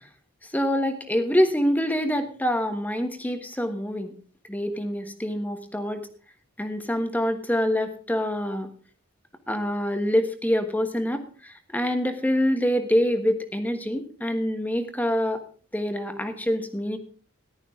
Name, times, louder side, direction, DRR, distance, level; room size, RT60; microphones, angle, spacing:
voice 1, 0.5-4.1 4.5-6.0 6.6-8.7 9.5-11.2 11.7-15.4 15.7-17.0, equal, 10° left, 7 dB, 1.3 m, -25 dB
14.5 x 11.5 x 3.6 m, 0.41 s
head